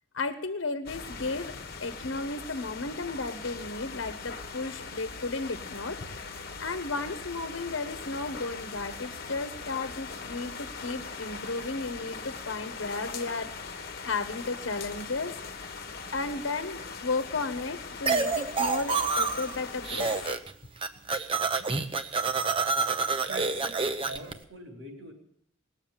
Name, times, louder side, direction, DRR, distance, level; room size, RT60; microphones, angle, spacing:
voice 1, 0.1-1.6 1.8-13.7 14.0-15.4 16.1-20.2, left 3 dB, 85° left, 10 dB, 1.1 m, -34 dB
sound 1, 0.9-20.3, left 4 dB, 50° left, 1.3 m, -41 dB
sound 2, 18.1-19.6 19.8-20.5 20.8-24.3, right 4 dB, 25° right, 0.8 m, -28 dB
voice 2, 23.2-25.1, right 2 dB, 75° right, 1 dB, 4.3 m, -43 dB
19.5 x 7.3 x 8.8 m, 0.66 s
head